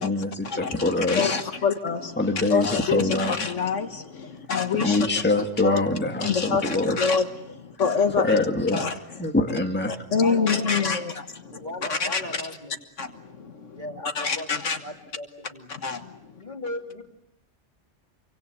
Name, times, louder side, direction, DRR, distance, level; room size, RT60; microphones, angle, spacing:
voice 1, 0.0-1.4 2.2-3.5 4.3-4.4 4.7-7.0 8.1-8.8 9.2-9.9 10.9-11.2, left 2 dB, 10° left, 4 dB, 1.7 m, -25 dB
voice 2, 1.1-2.2 2.5-5.0 5.6-5.8 6.2-8.4 8.7-8.9 10.1-11.6 11.9-12.4 13.0-13.6 14.1-14.8 15.7-16.4, left 5 dB, 75° left, 7 dB, 1.8 m, -26 dB
voice 3, 4.2-4.5 4.8-4.9 7.5-7.7 10.2-10.9 11.5-12.8 13.8-14.5 14.8-15.7 16.3-17.0, left 1 dB, 40° left, 2 dB, 3.1 m, -37 dB
27.5 x 24.5 x 8.1 m, 0.82 s
omnidirectional pair, 1.3 m